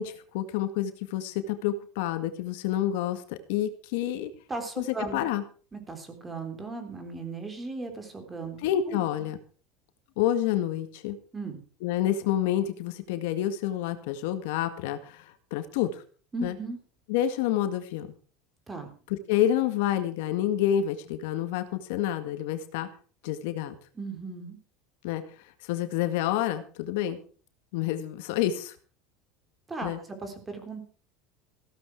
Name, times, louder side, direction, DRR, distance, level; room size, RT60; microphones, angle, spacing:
voice 1, 0.0-4.3 4.8-4.9 5.1-5.4 8.6-9.4 10.2-11.2 11.8-16.0 16.4-16.5 17.1-18.1 19.1-22.9 23.2-23.8 25.0-25.2 25.6-27.2 27.7-28.8 29.8-30.0, left 11 dB, 75° left, 9 dB, 1.9 m, -28 dB
voice 2, 4.5-5.3 5.7-8.6 8.9-9.0 11.3-11.6 16.3-16.8 18.7-18.9 24.0-24.6 29.7-29.9 30.2-30.8, right 3 dB, 15° right, 6 dB, 3.6 m, -36 dB
15.5 x 13.0 x 4.7 m, 0.41 s
supercardioid pair, 150°, 0 cm